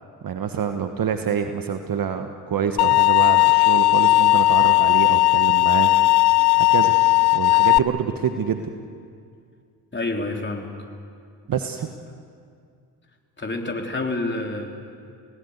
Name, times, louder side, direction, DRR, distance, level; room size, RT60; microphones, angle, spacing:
voice 1, 0.2-6.2 6.6-6.9 7.3-8.7 11.5-11.9, right 7 dB, 45° right, 7 dB, 1.4 m, -26 dB
sound 1, 2.8-7.8, left 18 dB, 55° left, 0.7 m, -16 dB
voice 2, 9.9-10.7 13.4-14.8, left 2 dB, 25° left, 2 dB, 3.8 m, -28 dB
28.5 x 18.0 x 8.2 m, 2.3 s
hypercardioid pair, 50°, 47 cm